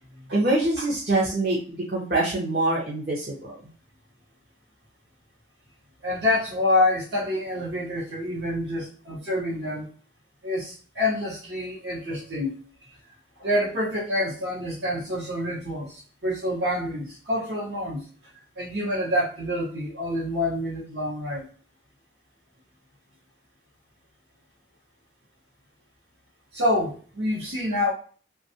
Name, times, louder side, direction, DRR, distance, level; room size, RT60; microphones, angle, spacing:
voice 1, 0.3-3.5, right 2 dB, 55° right, -5 dB, 0.8 m, -24 dB
voice 2, 6.0-9.9 10.4-12.5 12.9-13.0 13.4-21.5 26.5-27.9, left 1 dB, 80° right, -8 dB, 1.1 m, -27 dB
3.2 x 2.4 x 2.7 m, 0.42 s
head